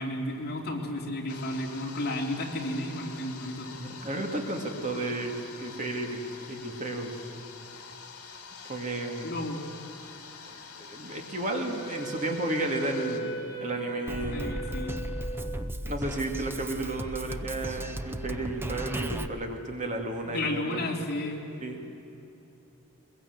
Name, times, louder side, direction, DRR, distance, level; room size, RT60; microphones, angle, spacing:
voice 1, 0.0-3.7 9.2-9.6 14.3-14.9 20.2-21.4, left 1 dB, 45° left, -1 dB, 3.2 m, -32 dB
sound 1, 1.3-13.2, left 5 dB, 70° left, 2.7 m, -46 dB
voice 2, 3.7-7.1 8.7-9.3 10.5-13.3 13.6-14.6 15.6-20.9 21.6-21.9, right 2 dB, 35° right, 2 dB, 2.3 m, -33 dB
Wind instrument woodwind instrument, 11.7-16.0, right 2 dB, 20° left, 3.3 m, -38 dB
Drum kit, 14.1-19.3, right 1 dB, 10° right, 0.6 m, -35 dB
22.5 x 22.0 x 7.9 m, 3.0 s
head